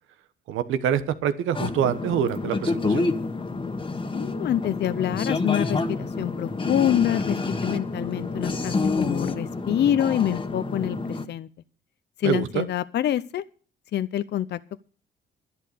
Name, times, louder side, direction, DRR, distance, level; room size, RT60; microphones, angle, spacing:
voice 1, 0.5-3.1 12.2-12.7, right 9 dB, 90° right, 12 dB, 1.1 m, -25 dB
sound 1, 1.5-11.2, left 3 dB, 25° left, 1.4 m, -28 dB
voice 2, 4.1-11.5 12.2-13.4 13.9-14.8, left 11 dB, 60° left, 14 dB, 0.6 m, -26 dB
11.5 x 11.0 x 6.7 m, 0.43 s
cardioid pair, 90°, 20 cm